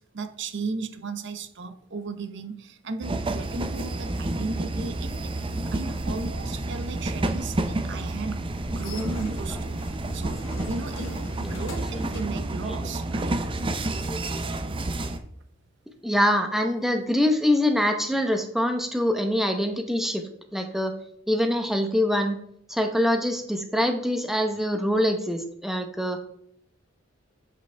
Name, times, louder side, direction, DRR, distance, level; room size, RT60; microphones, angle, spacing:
voice 1, 0.0-5.3 5.7-9.8 10.1-13.4, right 3 dB, 65° right, 0.7 m, -35 dB
sound 1, 3.0-15.2, right 2 dB, 25° right, 0.6 m, -30 dB
sound 2, 4.3-12.2, left 2 dB, 80° left, 1.4 m, -45 dB
voice 2, 16.0-20.9 21.3-22.4 22.7-26.2, equal, ahead, 0.9 m, -24 dB
7.8 x 5.8 x 3.4 m
head